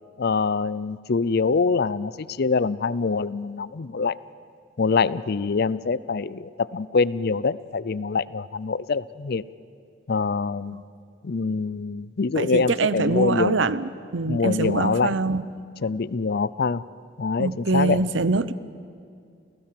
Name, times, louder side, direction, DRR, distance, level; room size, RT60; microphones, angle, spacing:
voice 1, 0.2-4.2 4.8-9.4 10.1-10.8 11.2-13.6 14.3-15.1 15.8-16.8 17.2-18.0, left 4 dB, 55° left, 19 dB, 0.5 m, -24 dB
voice 2, 12.4-15.4 17.4-18.5, right 3 dB, 90° right, 16 dB, 0.8 m, -24 dB
28.0 x 17.5 x 7.6 m, 2.4 s
head